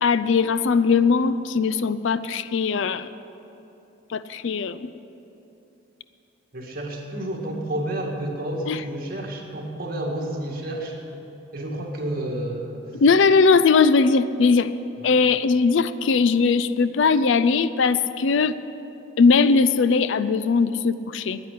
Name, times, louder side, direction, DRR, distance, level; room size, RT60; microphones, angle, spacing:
voice 1, 0.0-3.1 4.1-4.9 8.7-8.8 13.0-14.7 15.0-18.5 19.2-21.4, left 4 dB, 65° left, 14 dB, 0.4 m, -19 dB
voice 2, 6.5-11.0 11.5-13.0 15.0-15.1, right 1 dB, 45° right, 0 dB, 2.0 m, -30 dB
10.5 x 9.8 x 10.0 m, 2.9 s
head